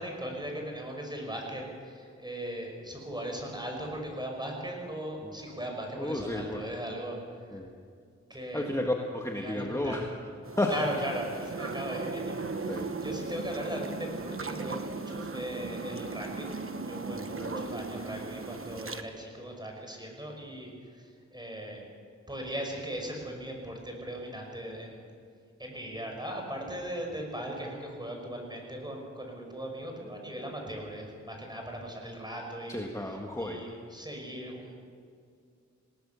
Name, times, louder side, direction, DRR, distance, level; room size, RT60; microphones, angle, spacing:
voice 1, 0.0-7.2 7.5-7.6 8.3-8.7 9.4-10.0 10.7-21.9 22.3-25.1 25.6-32.8 33.4-34.7, right 1 dB, 15° right, 1 dB, 5.5 m, -38 dB
voice 2, 6.0-6.6 7.5-7.7 8.5-10.1 10.6-10.8 12.7-12.9 17.1-17.7 32.7-33.7, left 1 dB, 10° left, 1 dB, 1.8 m, -32 dB
sound 1, 10.4-19.0, right 3 dB, 45° right, 1.2 m, -37 dB
20.5 x 18.0 x 7.1 m, 2.2 s
wide cardioid pair, 75°, 29 cm